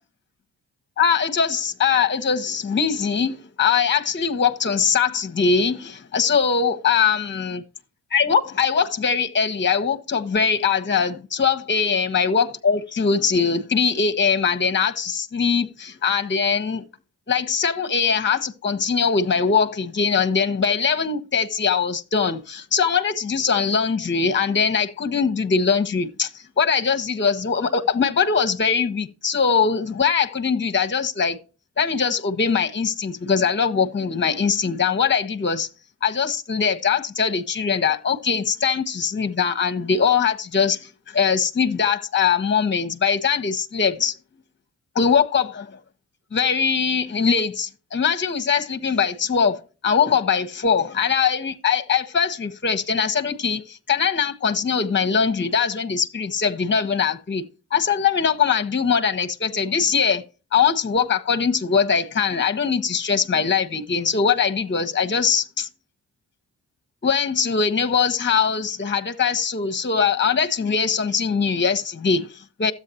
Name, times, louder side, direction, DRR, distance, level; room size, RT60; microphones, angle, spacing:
voice 1, 1.0-7.6 8.1-16.8 17.3-31.4 31.8-35.7 36.0-44.2 44.9-45.8 46.3-57.4 57.7-60.2 60.5-65.7 67.0-72.7, left 6 dB, 30° left, 1.2 m, -21 dB
13.0 x 8.4 x 2.9 m
supercardioid pair, 60°, 36 cm